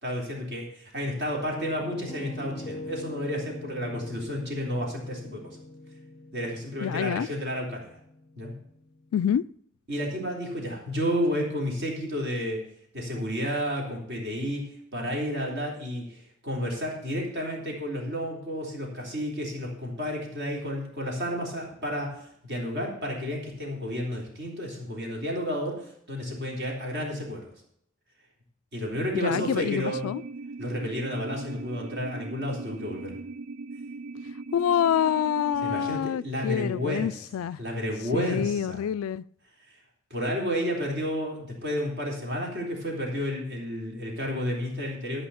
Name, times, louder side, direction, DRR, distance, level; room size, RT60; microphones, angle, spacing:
voice 1, 0.0-5.4 6.3-8.0 8.4-8.5 9.9-12.6 12.9-27.5 28.7-30.1 30.6-33.1 35.6-37.1 37.6-38.8 40.1-45.3, equal, 50° right, 3.6 m, -31 dB
Piano, 1.6-9.4, left 1 dB, 20° left, 0.5 m, -42 dB
voice 2, 6.8-7.3 9.1-9.4 29.1-30.2 34.5-37.6 38.1-39.2, left 9 dB, 75° left, 0.3 m, -27 dB
sound 1, 29.3-35.9, right 3 dB, 85° right, 0.5 m, -39 dB
13.0 x 5.6 x 7.0 m
head